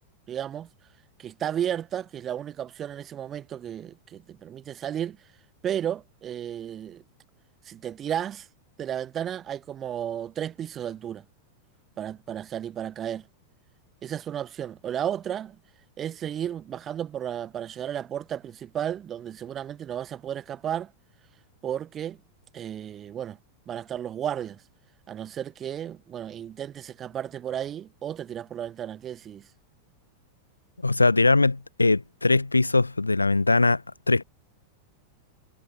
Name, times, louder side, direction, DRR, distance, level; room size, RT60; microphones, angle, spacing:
voice 1, 0.3-0.7 1.2-5.2 5.6-7.0 7.6-8.5 8.8-11.2 12.0-13.3 14.0-15.6 16.0-20.9 21.6-22.2 22.5-23.4 23.7-24.6 25.1-29.5, right 10 dB, 25° right, 0.8 m, -33 dB
voice 2, 30.8-33.8 34.1-34.2, left 3 dB, 80° left, 0.9 m, -21 dB
figure-of-eight pair, 90°, 0 cm